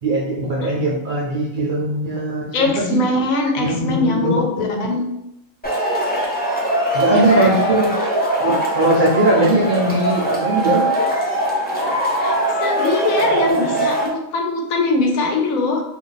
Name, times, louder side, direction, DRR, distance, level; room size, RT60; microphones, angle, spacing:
voice 1, 0.0-3.0 3.6-4.9 6.9-7.9 8.4-10.9, right 1 dB, 50° right, -3 dB, 0.6 m, -20 dB
voice 2, 2.5-5.1 7.1-7.5 12.2-12.3 12.6-15.8, left 2 dB, 90° left, 2 dB, 1.1 m, -21 dB
Male speech man speaking / Shout / Clapping, 5.6-14.1, right 1 dB, 10° left, 0.4 m, -21 dB
2.6 x 2.3 x 3.9 m, 0.85 s
omnidirectional pair, 1.4 m